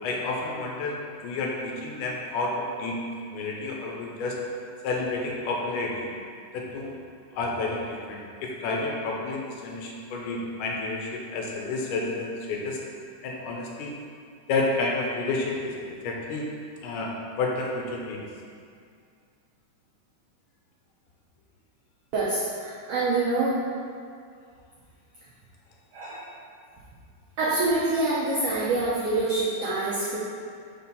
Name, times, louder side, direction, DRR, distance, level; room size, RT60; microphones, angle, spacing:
voice 1, 0.0-3.0 3.3-4.4 4.8-6.1 6.5-7.0 7.3-12.8 13.2-14.0 14.5-16.5 16.8-18.2, left 3 dB, 80° left, -1 dB, 2.2 m, -30 dB
voice 2, 22.1-23.6 25.9-26.3 27.4-30.2, right 2 dB, 80° right, -7 dB, 1.3 m, -26 dB
5.0 x 4.4 x 5.3 m, 2.3 s
omnidirectional pair, 3.8 m